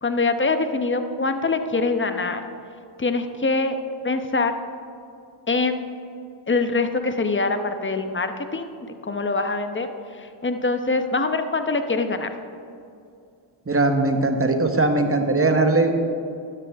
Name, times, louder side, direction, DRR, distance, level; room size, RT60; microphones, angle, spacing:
voice 1, 0.0-2.4 3.0-3.8 4.0-4.5 5.5-5.8 6.5-12.3, left 3 dB, 25° left, 7 dB, 1.0 m, -24 dB
voice 2, 13.7-15.9, right 2 dB, 25° right, 5 dB, 1.3 m, -20 dB
13.0 x 11.0 x 3.6 m, 2.5 s
cardioid pair, 60°, 48 cm